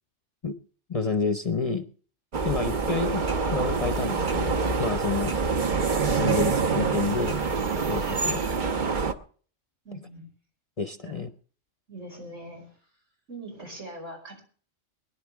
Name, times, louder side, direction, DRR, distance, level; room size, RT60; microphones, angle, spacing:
voice 1, 0.9-1.9 2.4-5.4 6.1-7.4 7.9-8.4 10.8-11.3, left 4 dB, 35° left, 9 dB, 0.7 m, -29 dB
sound 1, 2.3-9.1, right 4 dB, 45° right, 1.0 m, -26 dB
voice 2, 9.8-10.3 11.0-11.2 11.9-12.8 13.3-14.4, right 1 dB, 80° right, 1 dB, 5.8 m, -41 dB
22.0 x 11.0 x 3.5 m, 0.44 s
omnidirectional pair, 1.3 m